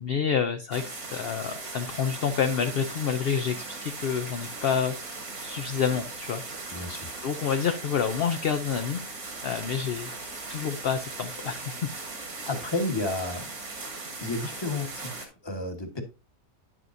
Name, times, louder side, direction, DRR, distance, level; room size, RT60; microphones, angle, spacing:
voice 1, 0.0-4.9 5.4-6.4 7.2-9.0 9.4-10.1 10.5-11.9, left 7 dB, 55° left, 0.7 m, -28 dB
sound 1, 0.7-15.3, right 3 dB, 85° right, 2.7 m, -38 dB
voice 2, 6.7-7.1 12.4-13.5 14.2-16.0, left 2 dB, 20° left, 1.3 m, -31 dB
9.6 x 7.5 x 2.6 m
omnidirectional pair, 1.5 m